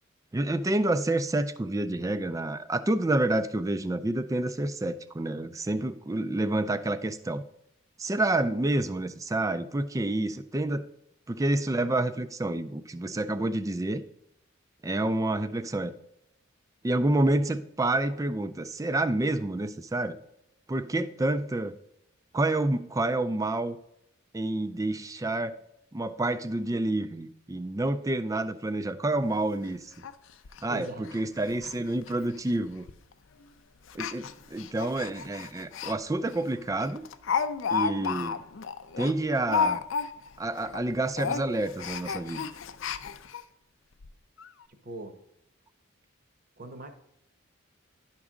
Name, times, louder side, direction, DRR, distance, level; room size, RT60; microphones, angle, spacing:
voice 1, 0.3-7.4 8.0-10.9 11.3-14.0 14.8-15.9 16.8-20.2 20.7-21.7 22.3-23.8 24.3-25.5 25.9-29.9 30.6-32.9 33.9-37.0 37.7-38.4 39.0-39.8 40.4-42.4, right 2 dB, 15° right, 12 dB, 0.3 m, -28 dB
Speech, 29.1-29.2 29.6-29.7 30.0-30.1 30.5-30.6 31.1-31.2 31.5-31.7 32.0-32.1 32.9-33.1 33.9-36.0 36.3-36.4 36.8-40.4 40.6-40.8 41.1-43.4 44.0-44.1 44.4-44.5, left 6 dB, 65° left, 0.4 m, -32 dB
voice 2, 30.7-31.1 31.7-31.9 44.7-45.1 46.6-46.9, right 1 dB, 40° right, 7 dB, 0.9 m, -42 dB
10.5 x 6.0 x 3.7 m, 0.81 s
head